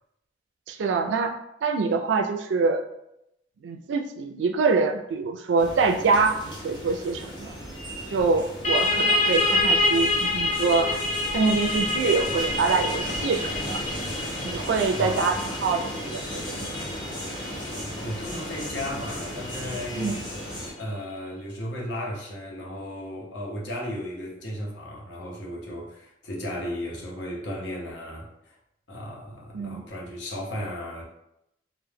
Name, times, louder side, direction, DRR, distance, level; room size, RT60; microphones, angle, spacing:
voice 1, 0.7-1.4 1.6-2.8 3.6-7.5 8.1-11.0 11.3-13.8 14.4-16.7 19.9-20.2 29.5-29.8, right 4 dB, 80° right, 6 dB, 0.3 m, -25 dB
sound 1, 5.6-20.7, equal, 25° left, 0.7 m, -35 dB
sound 2, 8.6-20.0, left 2 dB, 40° left, 0.3 m, -27 dB
voice 2, 14.9-15.2 18.0-20.2 20.8-28.6 28.9-31.0, equal, 80° left, -2 dB, 0.7 m, -35 dB
2.2 x 2.0 x 3.2 m, 0.82 s
head